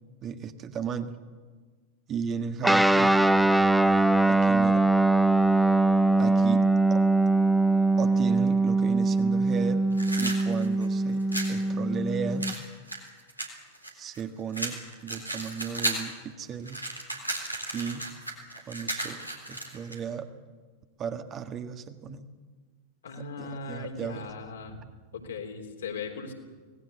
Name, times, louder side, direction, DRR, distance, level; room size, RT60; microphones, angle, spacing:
voice 1, 0.2-1.2 2.1-3.1 4.3-4.9 6.2-6.6 6.9-7.0 8.0-9.9 10.2-12.5 13.9-16.9 17.7-18.1 18.7-20.3 21.0-22.3 23.4-24.3, right 7 dB, 30° right, 8 dB, 1.6 m, -35 dB
Guitar, 2.6-12.5, right 2 dB, ahead, 0.7 m, -22 dB
voice 2, 2.7-3.3 23.0-24.8 25.1-26.3, left 4 dB, 65° left, 3 dB, 3.6 m, -38 dB
sound 1, 9.9-11.6 12.4-14.2 14.5-16.1 16.4-20.0, right 2 dB, 90° right, 3.7 m, -34 dB
25.0 x 18.5 x 8.2 m, 1.4 s
figure-of-eight pair, 90°, 0 cm